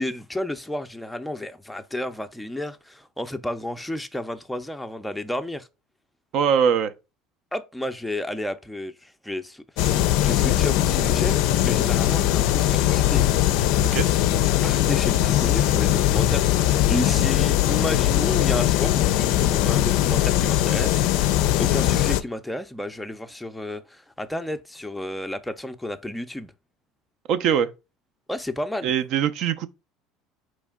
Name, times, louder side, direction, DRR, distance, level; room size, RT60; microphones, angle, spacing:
voice 1, 0.0-5.7 7.5-13.2 14.6-26.5 28.3-28.9, left 1 dB, 5° left, 0.4 m, -32 dB
voice 2, 6.3-6.9 13.8-14.1 27.3-27.7 28.8-29.7, right 8 dB, 60° right, 0.5 m, -22 dB
sound 1, 9.8-22.2, left 13 dB, 70° left, 0.4 m, -20 dB
4.2 x 3.1 x 3.6 m
supercardioid pair, 120°, 0 cm